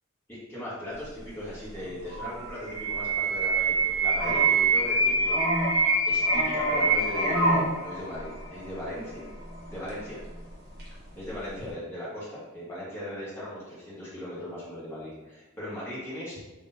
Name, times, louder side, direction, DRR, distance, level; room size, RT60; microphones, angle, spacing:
voice 1, 0.3-5.5 6.1-9.2 9.7-10.2 11.1-16.4, left 1 dB, 10° left, -10 dB, 1.3 m, -38 dB
sound 1, 1.8-10.9 11.3-11.6, right 2 dB, 50° right, 1.0 m, -25 dB
3.6 x 3.1 x 2.7 m, 1.2 s
head